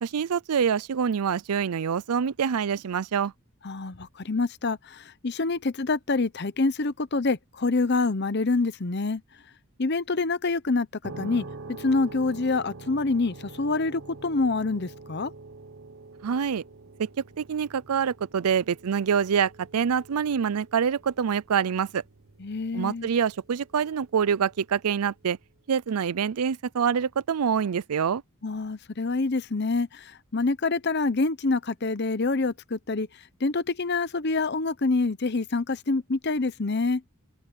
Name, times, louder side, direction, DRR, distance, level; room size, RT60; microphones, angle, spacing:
voice 1, 0.0-3.3 16.2-16.6 17.0-17.1 17.4-22.0 22.7-25.4 25.7-28.2, right 7 dB, 85° right, 0.5 m, -26 dB
voice 2, 3.6-9.2 9.8-10.9 11.2-11.4 11.8-15.3 22.4-23.1 28.4-33.1 33.4-37.0, left 3 dB, 50° left, 0.8 m, -26 dB
sound 1, 11.0-25.7, right 3 dB, 65° right, 1.4 m, -46 dB
head